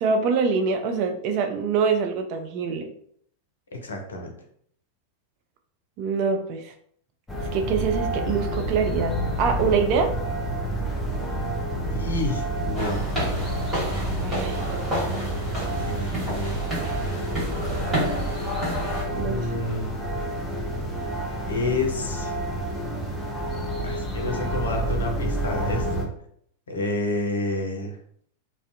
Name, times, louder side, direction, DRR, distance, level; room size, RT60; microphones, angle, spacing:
voice 1, 0.0-2.9 6.0-6.7 7.5-10.1 14.2-14.7 19.1-19.4, right 5 dB, 45° right, 5 dB, 0.3 m, -24 dB
voice 2, 3.7-4.3 11.9-13.1 15.8-16.6 19.2-20.0 21.5-22.3 23.8-26.1 26.7-28.0, left 2 dB, 70° left, 3 dB, 0.5 m, -29 dB
sound 1, 7.3-26.0, right 1 dB, 10° left, 0.6 m, -29 dB
sound 2, 12.7-19.0, right 1 dB, 15° right, 1.5 m, -30 dB
2.4 x 2.1 x 2.5 m, 0.65 s
figure-of-eight pair, 90°, 0 cm